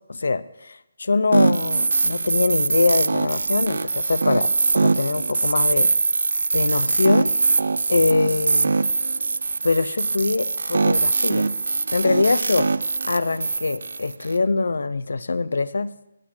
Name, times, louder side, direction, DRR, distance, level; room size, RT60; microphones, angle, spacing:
voice 1, 0.1-5.9 6.5-7.3 7.9-8.7 9.6-11.5 11.9-12.7 13.0-15.9, left 3 dB, 80° left, 18 dB, 0.7 m, -23 dB
sound 1, 1.3-14.4, right 3 dB, 75° right, 0.4 m, -22 dB
18.0 x 6.3 x 6.2 m, 0.90 s
hypercardioid pair, 165°, 0 cm